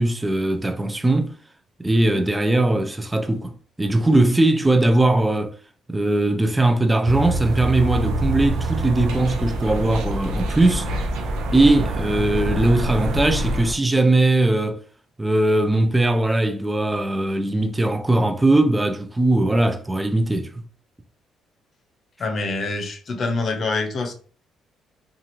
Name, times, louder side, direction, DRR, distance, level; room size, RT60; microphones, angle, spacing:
voice 1, 0.0-1.3 1.8-5.5 5.9-10.9 11.5-14.8 15.2-20.5, right 2 dB, 15° right, 0.5 m, -20 dB
sound 1, 7.0-13.7, right 1 dB, 80° right, 0.5 m, -25 dB
voice 2, 22.2-24.1, left 3 dB, 50° left, 0.7 m, -25 dB
2.5 x 2.4 x 2.9 m
supercardioid pair, 70°, 0 cm